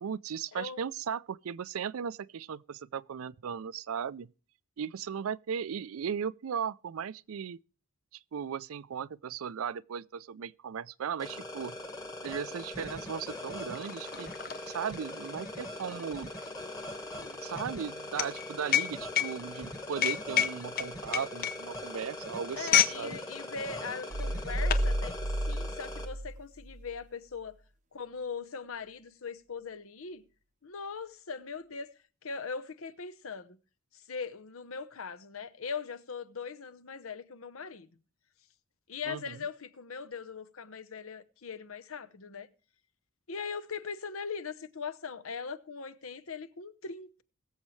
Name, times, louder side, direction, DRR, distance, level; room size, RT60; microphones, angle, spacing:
voice 1, 0.0-4.3 4.8-7.6 8.3-11.8 12.2-14.3 14.7-16.3 17.4-23.2 39.1-39.4, right 7 dB, 85° right, 0.4 m, -37 dB
voice 2, 0.5-0.8 15.6-15.8 22.5-25.1 25.5-27.6 27.9-30.2 30.6-31.9 32.2-33.6 33.9-37.9 38.9-42.5 43.3-47.2, left 5 dB, 80° left, 0.8 m, -40 dB
sound 1, 11.2-26.0, left 1 dB, 15° left, 1.4 m, -41 dB
sound 2, 12.7-12.8 13.1-23.0 23.3-23.6 24.3-24.9, left 10 dB, 45° left, 0.7 m, -30 dB
sound 3, 24.1-27.0, right 1 dB, 35° right, 0.6 m, -32 dB
21.5 x 7.3 x 3.2 m
head